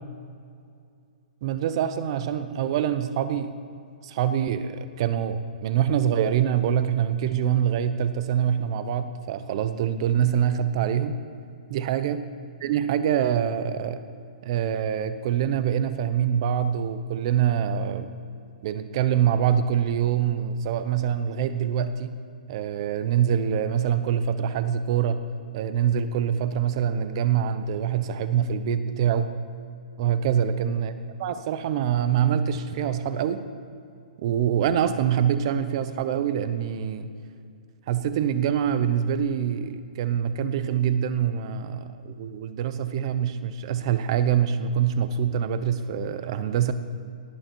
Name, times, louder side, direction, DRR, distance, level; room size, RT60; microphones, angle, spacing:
voice 1, 1.4-3.5 4.0-11.2 11.7-12.2 12.6-14.0 14.4-18.1 18.6-22.2 22.5-25.2 25.5-29.3 30.0-30.9 31.2-33.5 34.2-37.1 37.9-46.7, right 9 dB, 35° right, 12 dB, 0.7 m, -25 dB
18.0 x 8.6 x 4.5 m, 2.4 s
hypercardioid pair, 165°, 5 cm